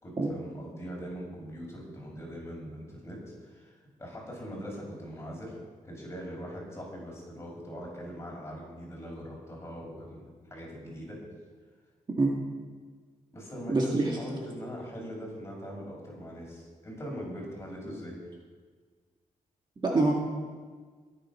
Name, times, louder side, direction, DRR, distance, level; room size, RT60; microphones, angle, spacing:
voice 1, 0.0-5.5 5.8-11.2 13.3-18.2, equal, 20° left, -2 dB, 5.3 m, -41 dB
voice 2, 13.7-14.1 19.8-20.1, right 3 dB, 35° right, -1 dB, 2.1 m, -24 dB
22.5 x 7.8 x 5.8 m, 1.5 s
wide cardioid pair, 150°, 13 cm